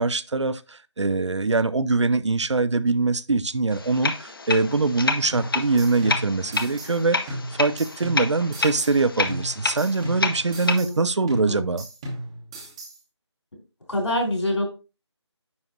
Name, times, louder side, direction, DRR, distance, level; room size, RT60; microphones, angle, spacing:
voice 1, 0.0-11.9, right 3 dB, 75° right, 0.6 m, -23 dB
sound 1, 3.7-10.8, left 3 dB, 50° left, 0.8 m, -29 dB
sound 2, 5.3-7.0 7.3-9.0 9.3-11.0 11.3-13.0, right 1 dB, 10° right, 0.8 m, -36 dB
voice 2, 10.6-11.7 13.9-14.6, left 1 dB, 75° left, 3.6 m, -27 dB
9.5 x 4.6 x 2.5 m
figure-of-eight pair, 165°, 15 cm